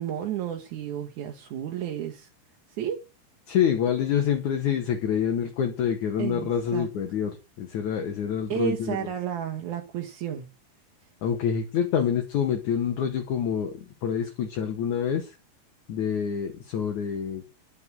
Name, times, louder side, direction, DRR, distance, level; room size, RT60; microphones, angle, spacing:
voice 1, 0.0-2.3 2.7-3.0 6.2-6.9 8.5-10.5, right 10 dB, 60° right, 3 dB, 2.2 m, -32 dB
voice 2, 3.5-9.1 11.2-15.3 15.9-17.4, left 8 dB, 55° left, 3 dB, 2.6 m, -27 dB
11.0 x 9.5 x 6.3 m, 0.29 s
omnidirectional pair, 5.1 m